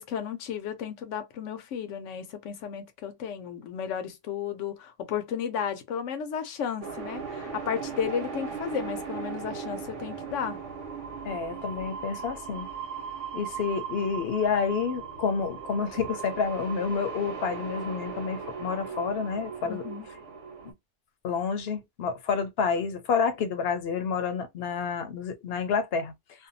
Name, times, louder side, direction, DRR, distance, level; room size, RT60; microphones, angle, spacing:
voice 1, 0.0-10.6 19.6-20.1, left 8 dB, 90° left, 1.0 m, -33 dB
sound 1, 6.8-20.7, right 6 dB, 90° right, 1.1 m, -38 dB
voice 2, 11.2-12.7 13.3-19.9 20.6-20.7 21.2-26.1, left 6 dB, 65° left, 0.8 m, -29 dB
2.6 x 2.2 x 2.6 m
omnidirectional pair, 1.2 m